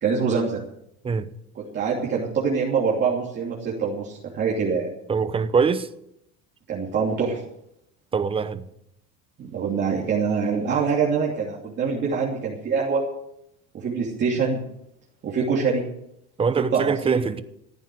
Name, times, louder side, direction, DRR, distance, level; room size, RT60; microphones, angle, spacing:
voice 1, 0.0-0.6 1.5-4.9 6.7-7.4 9.5-13.0 13.7-14.6 15.2-15.8 16.6-17.2, right 5 dB, 35° right, 2.9 m, -24 dB
voice 2, 5.1-5.9 8.1-8.6 16.4-17.4, right 5 dB, 20° right, 0.8 m, -23 dB
14.5 x 9.1 x 7.8 m
cardioid pair, 140°, 30 cm